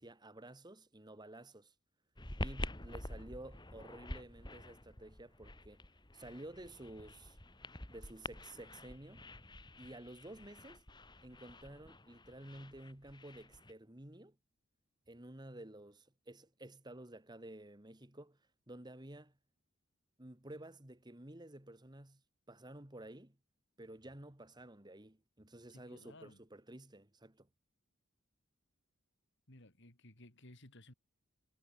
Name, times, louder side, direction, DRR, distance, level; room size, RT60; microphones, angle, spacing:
voice 1, 0.0-1.7 2.4-5.9 6.1-7.4 7.9-9.3 9.8-10.8 11.2-14.3 15.1-18.4 18.7-19.3 20.2-22.2 22.5-23.4 23.8-27.5, right 1 dB, 20° right, 1.7 m, -52 dB
sound 1, 2.2-13.7, left 1 dB, 20° left, 2.7 m, -48 dB
voice 2, 25.7-26.4 29.5-30.9, left 1 dB, 60° left, 4.3 m, -58 dB
head